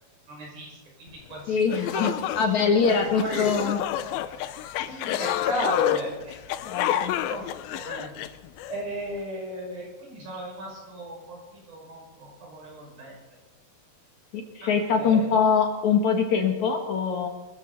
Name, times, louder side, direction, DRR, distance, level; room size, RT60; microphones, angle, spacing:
voice 1, 0.3-1.6 1.9-2.1 2.9-3.5 4.9-6.4 7.3-7.4 7.7-8.1 8.7-13.1 14.6-15.2, right 1 dB, 75° right, -2 dB, 7.7 m, -35 dB
sound 1, 1.3-1.4 1.7-8.8, left 11 dB, 85° left, 2.6 m, -29 dB
voice 2, 1.5-3.8 6.6-7.1 14.3-17.3, left 5 dB, 60° left, 3 dB, 2.6 m, -23 dB
23.0 x 14.5 x 4.1 m, 1.2 s
omnidirectional pair, 4.2 m